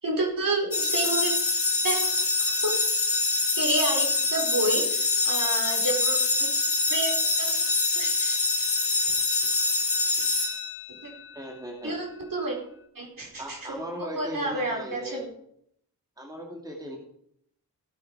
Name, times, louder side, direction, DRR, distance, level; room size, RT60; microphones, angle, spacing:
voice 1, 0.0-1.3 1.8-2.1 2.6-2.7 3.5-6.5 6.9-7.1 7.4-7.5 7.9-8.7 11.0-11.1 11.8-12.6 13.0-13.8 14.1-15.2, right 2 dB, 55° right, -1 dB, 4.5 m, -30 dB
sound 1, 0.7-11.1, left 3 dB, 35° left, 1.6 m, -25 dB
voice 2, 11.3-12.0 13.4-15.2 16.2-17.0, equal, 10° right, 0 dB, 2.6 m, -37 dB
16.5 x 8.7 x 4.8 m, 0.71 s
cardioid pair, 75°, 39 cm